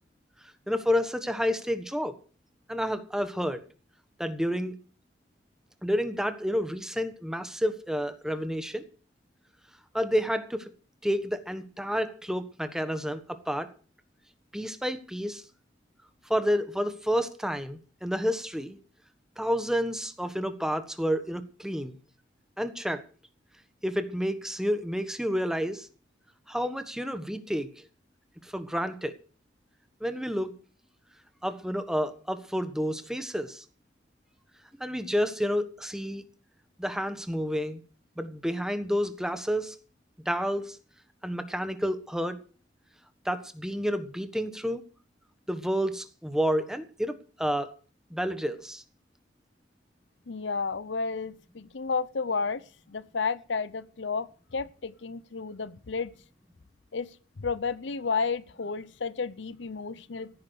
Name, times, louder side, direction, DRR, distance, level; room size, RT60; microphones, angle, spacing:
voice 1, 0.7-2.2 2.7-3.6 4.2-4.7 5.8-8.8 9.9-10.7 11.0-13.7 14.5-15.4 16.3-18.8 19.4-22.0 22.6-23.0 23.8-25.9 26.5-27.7 28.4-29.1 30.0-30.5 31.4-33.6 34.8-36.2 36.8-37.8 38.2-39.7 40.2-40.8 41.2-42.4 43.2-44.8 45.5-47.7 48.1-48.8, equal, 5° right, 1.4 m, -30 dB
voice 2, 50.3-52.6 52.9-54.3 54.5-56.1 56.9-57.1 57.4-60.3, left 4 dB, 75° left, 0.7 m, -31 dB
16.0 x 9.7 x 6.6 m
head